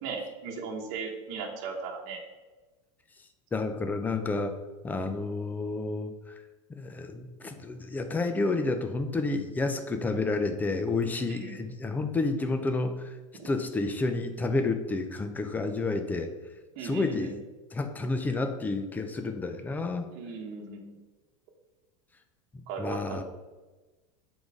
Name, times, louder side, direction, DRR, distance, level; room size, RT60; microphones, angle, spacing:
voice 1, 0.0-2.2 11.3-11.6 13.4-13.5 16.8-17.3 20.1-20.9 22.7-23.2, right 4 dB, 50° right, 0 dB, 1.1 m, -37 dB
voice 2, 3.5-4.6 4.8-6.3 6.7-13.1 13.4-16.3 16.8-17.3 17.7-20.1 22.8-23.2, left 3 dB, 10° left, 7 dB, 0.5 m, -30 dB
7.0 x 4.0 x 4.9 m, 1.2 s
supercardioid pair, 145°, 17 cm